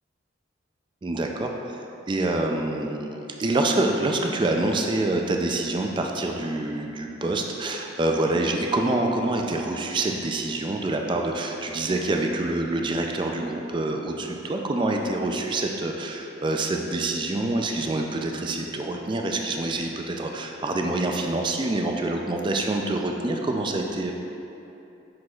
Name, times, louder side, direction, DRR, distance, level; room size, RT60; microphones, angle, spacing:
voice 1, 1.0-1.8 2.1-24.1, right 2 dB, 25° right, 2 dB, 0.3 m, -26 dB
7.6 x 6.0 x 2.4 m, 2.8 s
head